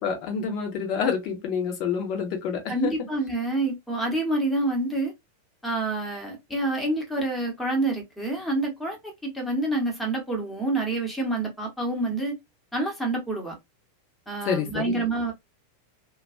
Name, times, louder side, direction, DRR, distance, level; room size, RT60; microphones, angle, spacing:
voice 1, 0.0-2.9 14.4-15.0, left 6 dB, 40° left, 0.8 m, -28 dB
voice 2, 2.7-5.1 5.6-12.4 12.7-13.6 14.3-15.3, right 2 dB, 5° left, 1.0 m, -27 dB
2.3 x 2.2 x 2.4 m
figure-of-eight pair, 90°, 0 cm